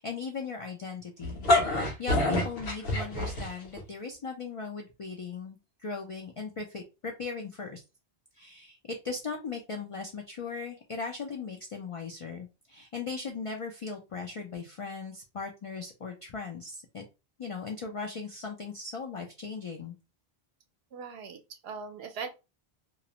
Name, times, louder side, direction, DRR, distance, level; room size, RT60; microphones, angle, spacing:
voice 1, 0.0-7.8 8.4-17.0 17.4-19.9, left 4 dB, 50° left, 2 dB, 0.4 m, -38 dB
sound 1, 1.2-3.8, left 1 dB, 65° left, 1.0 m, -26 dB
voice 2, 20.9-22.3, right 5 dB, 70° right, 6 dB, 0.8 m, -40 dB
2.5 x 2.0 x 2.8 m, 0.28 s
omnidirectional pair, 1.1 m